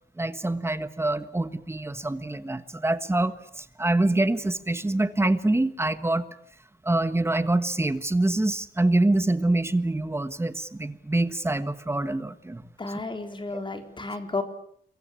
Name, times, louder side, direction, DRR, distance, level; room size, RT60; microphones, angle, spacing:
voice 1, 0.2-6.3 6.8-12.6 13.5-13.6, right 2 dB, 15° right, 12 dB, 1.5 m, -25 dB
voice 2, 12.8-14.4, left 3 dB, 25° left, 7 dB, 4.0 m, -32 dB
29.5 x 23.0 x 8.7 m, 0.64 s
wide cardioid pair, 155°, 19 cm